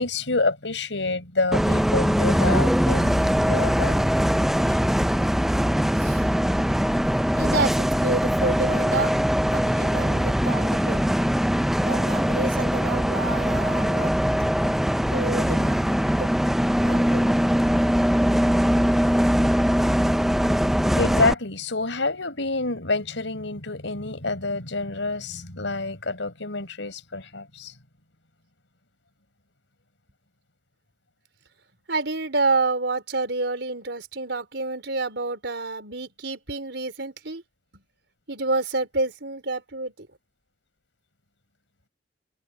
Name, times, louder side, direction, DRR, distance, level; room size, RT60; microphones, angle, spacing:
voice 1, 0.0-4.1 4.6-4.8 21.0-27.7, left 3 dB, 90° left, 4.7 m, -27 dB
Bus, 1.5-21.3, equal, ahead, 0.5 m, -21 dB
voice 2, 5.9-6.3 7.4-9.2 9.5-11.2 11.8-14.1 15.1-15.9 16.2-16.3 16.8-17.3 31.9-37.4 37.7-37.8 38.3-40.1, right 3 dB, 70° right, 4.4 m, -29 dB
head